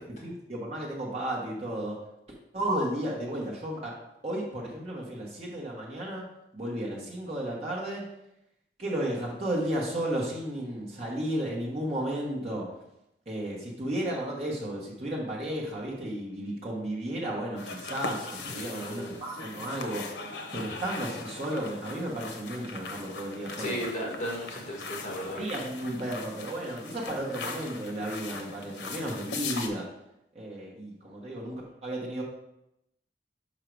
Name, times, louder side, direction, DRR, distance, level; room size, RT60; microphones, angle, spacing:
voice 1, 0.1-2.0 2.5-3.9 4.2-6.2 6.5-8.0 8.8-12.6 13.3-20.0 20.5-23.8 25.3-29.8 30.3-32.2, right 1 dB, 35° right, -4 dB, 1.2 m, -33 dB
sound 1, 17.6-29.7, left 4 dB, 80° left, 0.7 m, -40 dB
voice 2, 18.5-19.2 23.6-25.4, equal, 40° left, -2 dB, 1.7 m, -35 dB
5.6 x 5.1 x 4.6 m, 0.84 s
head